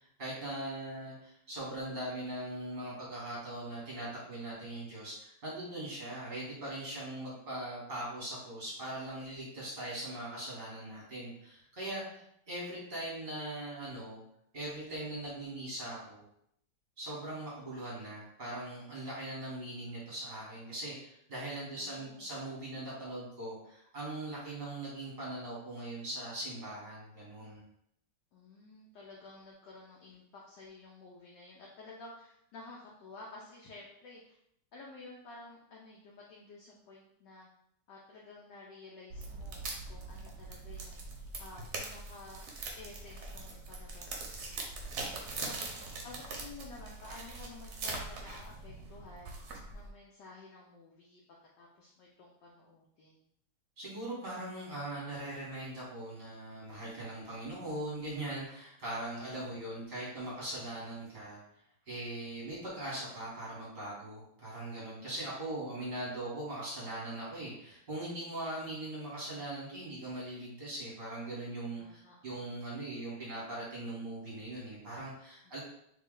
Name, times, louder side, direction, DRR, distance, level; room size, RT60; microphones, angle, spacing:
voice 1, 0.0-14.2 14.5-16.2 17.0-27.6 53.8-61.4 61.9-75.6, right 1 dB, 35° right, -7 dB, 1.0 m, -40 dB
voice 2, 21.8-22.3 28.3-34.4 34.7-37.5 37.9-41.0 41.4-42.5 42.8-44.9 45.4-45.5 46.0-51.2 51.6-53.2 71.8-72.2 75.4-75.5, left 3 dB, 70° left, -3 dB, 1.1 m, -52 dB
sound 1, 39.1-49.9, right 3 dB, 65° right, 1.0 m, -42 dB
3.2 x 2.9 x 3.8 m, 0.74 s
omnidirectional pair, 2.4 m